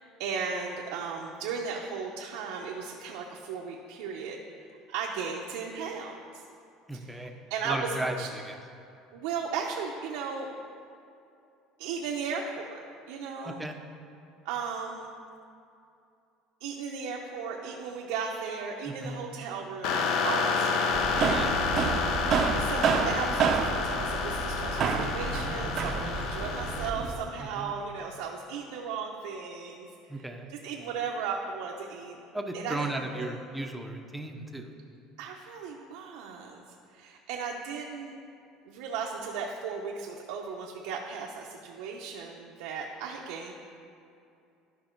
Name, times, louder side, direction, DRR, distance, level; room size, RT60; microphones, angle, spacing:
voice 1, 0.0-6.4 6.9-8.3 9.1-10.5 11.8-12.7 13.1-13.7 14.4-15.1 16.6-21.6 22.6-30.2 30.5-32.2 32.5-32.9 33.1-33.3 35.2-38.1 38.7-43.5, right 5 dB, 85° right, -1 dB, 0.7 m, -36 dB
voice 2, 6.9-7.3 7.6-8.6 13.4-13.7 18.9-19.3 21.3-21.7 27.4-27.7 30.1-30.5 32.3-34.7, right 1 dB, 5° right, 4 dB, 0.7 m, -36 dB
sound 1, 19.8-26.9, left 5 dB, 65° left, 0.7 m, -29 dB
sound 2, 20.9-27.2, right 5 dB, 45° right, 0.6 m, -29 dB
12.0 x 5.4 x 4.5 m, 2.6 s
cardioid pair, 145°, 0 cm